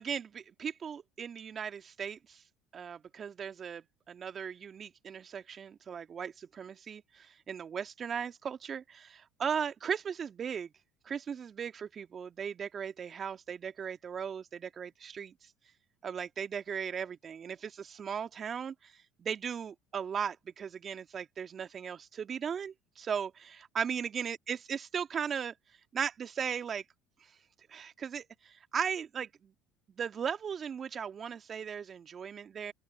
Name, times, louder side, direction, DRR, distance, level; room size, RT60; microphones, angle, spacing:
voice 1, 0.0-2.4 2.7-10.7 11.1-15.3 16.0-18.9 19.2-23.3 23.8-25.5 25.9-26.8 27.7-29.5 30.0-32.7, right 7 dB, 40° right, 1.9 m, -37 dB
open air
hypercardioid pair, 70°, 0 cm